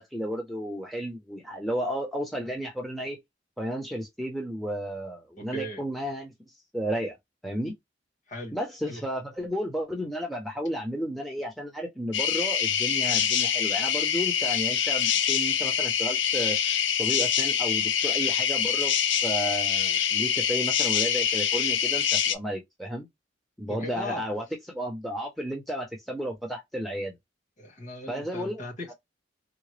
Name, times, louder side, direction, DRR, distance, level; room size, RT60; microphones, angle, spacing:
voice 1, 0.0-3.2 3.6-6.3 6.7-7.2 7.4-7.7 8.5-16.6 17.0-18.9 19.2-23.1 23.6-27.2 28.1-28.6 28.9-29.0, equal, ahead, 0.7 m, -32 dB
voice 2, 5.4-5.8 8.3-8.6 8.9-9.0 23.7-24.2 27.6-28.9, left 1 dB, 40° left, 1.5 m, -37 dB
sound 1, 12.1-22.3, left 8 dB, 65° left, 0.5 m, -25 dB
3.7 x 2.1 x 3.2 m
head